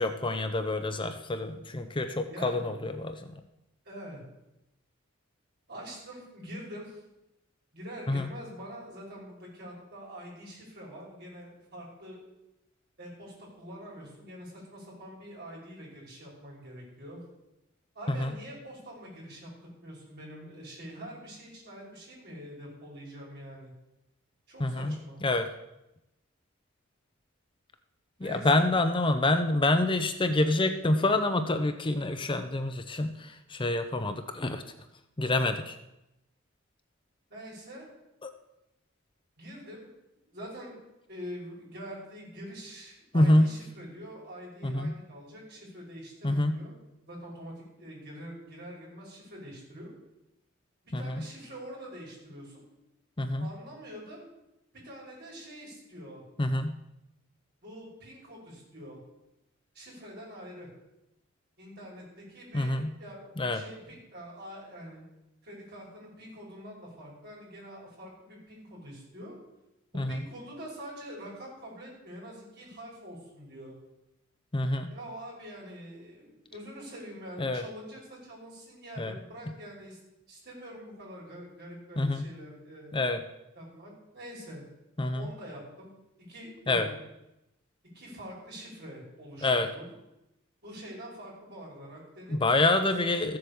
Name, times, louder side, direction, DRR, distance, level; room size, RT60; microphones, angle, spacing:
voice 1, 0.0-3.3 8.1-8.3 18.1-18.3 24.6-25.5 28.2-34.6 35.2-35.8 38.2-38.3 43.1-43.5 44.6-44.9 46.2-46.6 50.9-51.3 53.2-53.5 56.4-56.8 62.5-62.9 63.4-63.6 69.9-70.2 74.5-74.9 77.4-77.6 79.0-79.1 82.0-82.3 82.9-83.2 85.0-85.3 86.7-86.9 89.4-89.7 92.3-93.4, left 2 dB, 25° left, 8 dB, 0.7 m, -27 dB
voice 2, 2.3-2.7 3.8-4.2 5.7-7.0 7.7-12.2 13.0-17.2 17.9-19.5 19.8-23.7 24.5-25.2 28.2-28.7 37.3-37.9 39.4-39.9 40.3-40.8 41.1-46.8 47.1-49.9 50.8-52.7 53.4-54.3 54.7-56.2 57.6-59.0 59.7-60.7 61.6-65.0 65.4-69.4 70.1-73.8 74.9-80.0 80.3-82.9 83.6-84.6 85.1-85.9 86.2-87.0 87.9-89.9 90.6-92.9, equal, 55° right, -4 dB, 5.7 m, -45 dB
14.5 x 7.8 x 7.1 m, 0.91 s
head